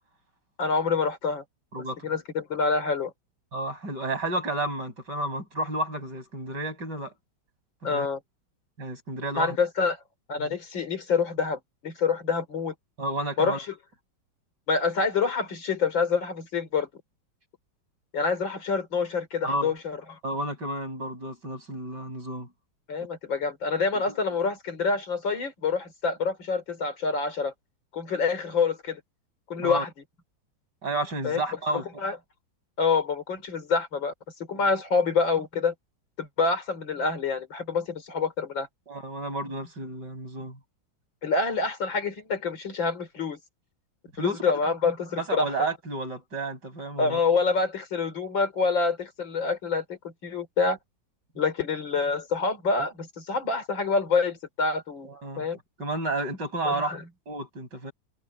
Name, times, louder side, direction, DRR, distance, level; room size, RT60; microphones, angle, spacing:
voice 1, 0.6-1.4 2.0-3.1 7.8-8.2 9.4-10.0 10.3-12.7 13.4-13.7 14.7-16.9 18.1-20.2 22.9-27.5 27.9-29.0 29.5-29.9 31.2-31.4 31.7-32.2 32.8-34.1 34.5-35.7 36.2-38.7 41.2-43.4 44.2-45.5 47.0-50.8 51.4-55.1 55.4-55.6 56.6-57.0, left 4 dB, 80° left, 4.3 m, -27 dB
voice 2, 1.7-2.1 3.5-7.1 7.8-8.1 8.8-9.6 10.4-10.5 13.0-13.6 19.4-19.7 20.2-22.5 29.6-29.8 30.8-32.0 38.9-40.6 44.1-44.4 45.2-47.2 55.0-55.5 55.8-56.9 57.3-57.9, right 2 dB, 60° right, 8.2 m, -31 dB
omnidirectional pair, 2.0 m